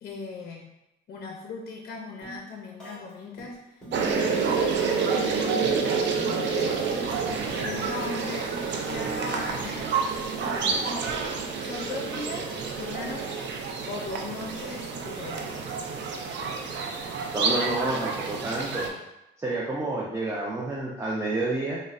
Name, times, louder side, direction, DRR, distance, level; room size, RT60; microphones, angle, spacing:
voice 1, 0.0-0.7 1.1-7.0 7.3-8.5 8.9-9.9 10.4-11.1 11.6-13.5 13.9-15.8, left 4 dB, 50° left, 0 dB, 0.5 m, -39 dB
sound 1, 2.2-2.5 2.8-3.1 3.4-4.3 4.5-7.8 8.0-8.9 9.2-11.4, right 1 dB, 5° left, 1.3 m, -44 dB
sound 2, 3.9-18.9, right 5 dB, 65° right, 0.5 m, -29 dB
voice 2, 17.3-18.9 19.4-21.8, right 2 dB, 15° right, -6 dB, 0.5 m, -29 dB
3.9 x 2.1 x 2.4 m, 0.90 s
cardioid pair, 90°, 20 cm